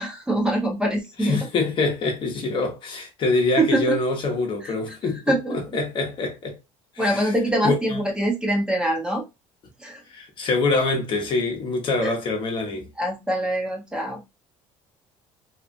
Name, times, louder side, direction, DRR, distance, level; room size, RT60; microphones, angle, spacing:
voice 1, 0.0-1.5 3.6-4.0 4.6-4.7 5.0-5.6 7.0-9.2 9.8-10.0 12.0-12.1 13.0-14.2, right 1 dB, 5° right, 0.8 m, -24 dB
voice 2, 1.2-5.2 5.5-6.6 7.0-7.2 7.6-7.7 10.1-12.9, left 3 dB, 45° left, 0.9 m, -25 dB
2.8 x 2.4 x 2.5 m
cardioid pair, 115°, 12 cm